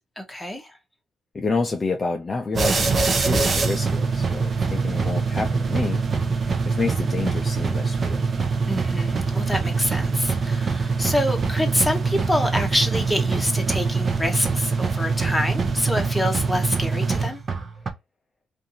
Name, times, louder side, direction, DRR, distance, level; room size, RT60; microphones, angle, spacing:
voice 1, 0.2-0.8 8.7-17.4, left 1 dB, 5° left, 0.9 m, -26 dB
voice 2, 1.3-6.0 6.6-8.3, left 3 dB, 30° left, 0.5 m, -28 dB
sound 1, 2.5-17.9, right 4 dB, 40° right, 0.7 m, -24 dB
2.5 x 2.5 x 2.7 m
cardioid pair, 90°, 0 cm